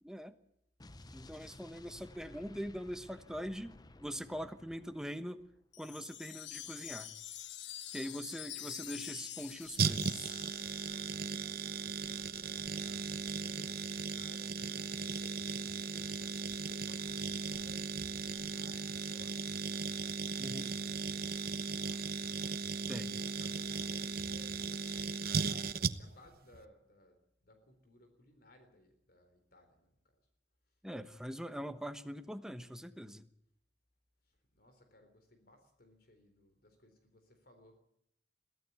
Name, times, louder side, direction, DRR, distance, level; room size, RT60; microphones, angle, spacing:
voice 1, 0.0-0.3 1.1-5.5 5.8-7.1 7.9-10.4 20.4-20.7 22.9-23.2 30.8-33.3, equal, 5° right, 9 dB, 1.1 m, -43 dB
Explosion, 0.8-5.6, left 2 dB, 20° left, 0.7 m, -56 dB
Wind chime, 5.7-11.1, left 12 dB, 90° left, 1.2 m, -46 dB
voice 2, 8.5-8.9 11.3-20.2 20.5-24.9 25.3-30.3 34.2-37.8, left 1 dB, 55° left, 6 dB, 3.9 m, -62 dB
sound 1, 9.8-26.3 26.5-26.6, right 5 dB, 55° right, 1.0 m, -37 dB
22.5 x 15.5 x 8.2 m, 0.77 s
head